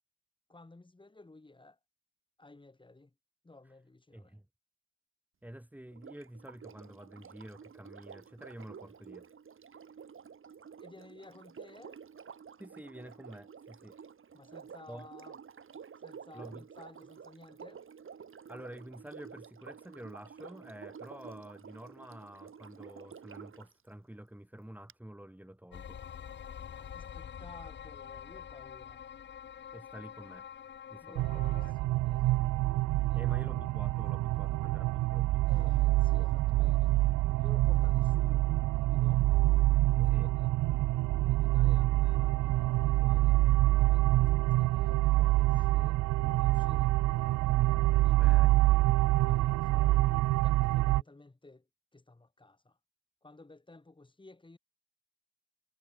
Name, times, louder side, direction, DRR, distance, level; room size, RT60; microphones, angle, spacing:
voice 1, 0.5-1.8 2.4-3.1 3.4-4.4 10.8-12.0 14.3-15.4 16.0-17.8 26.7-29.0 31.0-32.6 33.1-33.4 35.5-37.0 37.3-38.5 38.8-39.3 39.8-40.5 41.2-47.0 47.8-48.4 49.3-50.1 50.3-51.7 51.9-52.8 53.2-54.6, left 2 dB, 15° left, 5.3 m, -54 dB
voice 2, 4.1-4.4 5.4-9.3 12.6-14.0 14.9-15.1 16.3-16.7 18.5-26.0 29.7-30.5 30.9-31.9 33.1-35.7 37.8-37.9 40.1-40.3 48.2-48.5, right 1 dB, 5° right, 4.0 m, -49 dB
Sink (filling or washing), 5.9-23.7 24.9-25.0, right 7 dB, 45° right, 3.2 m, -50 dB
sound 1, 25.7-31.7, left 8 dB, 40° left, 0.7 m, -46 dB
sound 2, 31.2-51.0, right 18 dB, 75° right, 0.5 m, -26 dB
cardioid pair, 90°, 30 cm